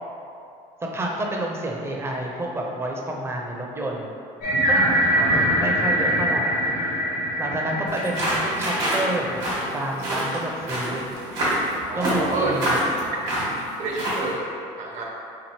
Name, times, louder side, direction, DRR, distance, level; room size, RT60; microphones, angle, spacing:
voice 1, 0.8-4.1 4.7-4.9 5.3-7.0 7.4-9.4 9.7-11.0 11.9-12.8, right 1 dB, 15° right, -1 dB, 0.5 m, -29 dB
sound 1, 4.4-9.6, right 1 dB, 65° left, 0.8 m, -23 dB
sound 2, 7.9-14.3, right 1 dB, 90° right, 1.0 m, -27 dB
voice 2, 11.9-12.6 13.8-14.4 14.8-15.0, right 3 dB, 55° right, -2 dB, 0.7 m, -28 dB
2.8 x 2.6 x 2.9 m, 2.5 s
supercardioid pair, 75°, 15 cm